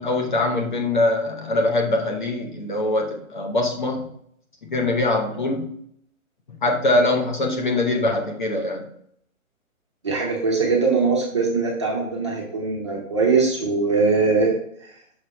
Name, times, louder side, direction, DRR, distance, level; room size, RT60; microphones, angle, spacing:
voice 1, 0.0-4.1 4.6-5.7 6.6-8.9, left 2 dB, 35° left, 3 dB, 0.8 m, -23 dB
voice 2, 10.0-14.5 14.8-14.9, right 4 dB, 20° right, -2 dB, 0.7 m, -21 dB
6.2 x 5.1 x 3.1 m, 0.67 s
hypercardioid pair, 170°, 42 cm